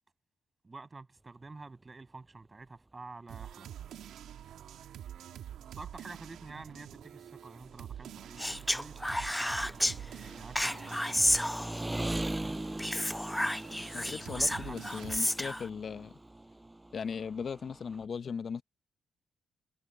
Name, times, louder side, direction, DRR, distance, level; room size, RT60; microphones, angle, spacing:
voice 1, 0.6-3.9 5.7-11.4 12.3-12.6 14.3-15.2, right 3 dB, 30° right, 7.5 m, -49 dB
sound 1, 3.3-11.5 11.7-15.2, right 10 dB, 75° right, 2.2 m, -47 dB
Engine, 5.0-5.1 5.3-18.1, right 1 dB, 15° right, 7.5 m, -42 dB
Speech, 8.4-10.0 10.6-12.0 12.8-15.7, equal, 5° left, 1.0 m, -31 dB
voice 2, 13.9-16.2 16.9-18.6, left 6 dB, 55° left, 1.3 m, -38 dB
supercardioid pair, 55°, 0 cm